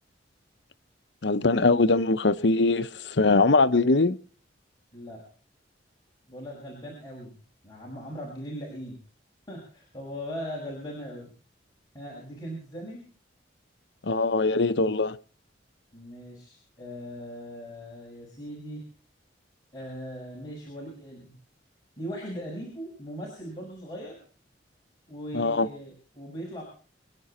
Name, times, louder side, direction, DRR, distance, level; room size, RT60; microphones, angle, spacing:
voice 1, 1.2-4.2 14.0-15.2 25.3-25.7, left 3 dB, 70° left, 0.9 m, -22 dB
voice 2, 6.3-7.4 7.6-9.0 9.5-11.3 11.9-13.0 15.9-18.8 19.7-21.4 22.0-24.1 25.1-26.6, equal, 20° left, 6.1 m, -39 dB
27.0 x 10.5 x 4.3 m
head